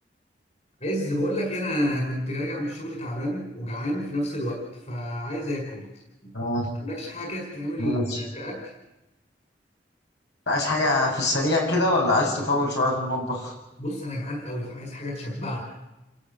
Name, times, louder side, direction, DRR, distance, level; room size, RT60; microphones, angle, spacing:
voice 1, 0.8-5.9 6.2-6.3 6.8-8.6 13.8-15.6, equal, 40° left, 1 dB, 5.5 m, -30 dB
voice 2, 6.3-6.7 7.8-8.2 10.5-13.5, left 2 dB, 75° left, -1 dB, 7.6 m, -24 dB
29.0 x 13.5 x 9.6 m, 0.99 s
head